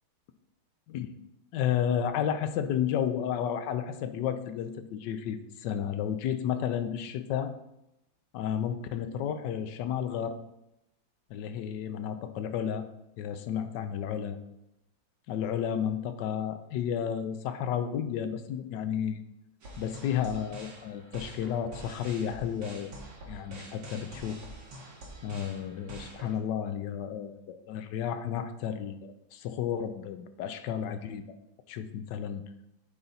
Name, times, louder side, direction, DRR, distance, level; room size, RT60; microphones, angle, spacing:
voice 1, 1.5-7.5 8.3-10.4 11.3-12.9 13.2-14.4 15.3-19.2 19.8-22.9 23.3-24.4 25.2-31.2 31.7-32.4, left 9 dB, 75° left, 10 dB, 1.1 m, -32 dB
sound 1, 19.6-26.3, right 1 dB, 80° right, 2.5 m, -46 dB
8.8 x 4.0 x 4.0 m, 0.88 s
omnidirectional pair, 2.1 m